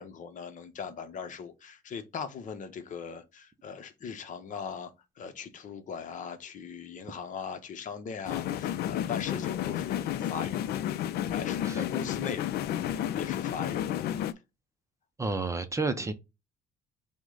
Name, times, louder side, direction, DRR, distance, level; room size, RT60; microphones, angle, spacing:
voice 1, 0.0-4.9 5.2-10.6 11.3-12.6 13.2-13.9, left 6 dB, 50° left, 0.8 m, -39 dB
sound 1, 8.2-14.3, left 11 dB, 70° left, 0.5 m, -31 dB
voice 2, 15.2-16.1, right 3 dB, 20° right, 0.6 m, -30 dB
5.9 x 2.2 x 3.8 m
cardioid pair, 110°, 17 cm